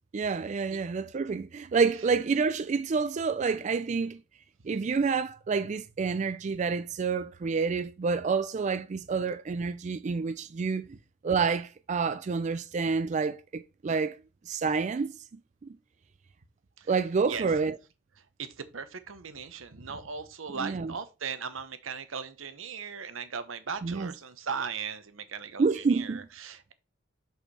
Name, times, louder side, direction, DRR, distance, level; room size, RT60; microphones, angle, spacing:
voice 1, 0.1-4.2 4.6-10.9 11.2-14.2 14.5-15.2 16.9-17.8 20.6-20.9 23.8-24.1 25.6-26.3, right 5 dB, 35° right, 0.3 m, -28 dB
voice 2, 18.4-26.7, right 6 dB, 85° right, 0.9 m, -38 dB
6.5 x 5.5 x 4.2 m
head